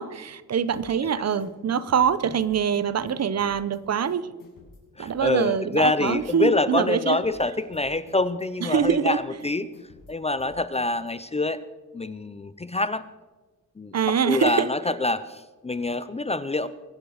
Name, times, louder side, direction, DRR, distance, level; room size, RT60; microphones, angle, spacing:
voice 1, 0.0-4.3 5.0-7.2 8.7-9.2 13.9-14.7, right 7 dB, 50° right, 16 dB, 0.7 m, -24 dB
sound 1, 0.7-1.1 1.4-3.1 3.4-3.8 4.1-5.8 6.1-6.5 6.7-8.5 8.7-9.1 9.4-11.1, left 4 dB, 90° left, 5.6 m, -51 dB
voice 2, 5.0-9.7 10.1-11.6 11.9-13.1 13.8-16.7, left 2 dB, 20° left, 14 dB, 0.4 m, -26 dB
23.0 x 8.1 x 6.3 m, 1.2 s
wide cardioid pair, 170°, 33 cm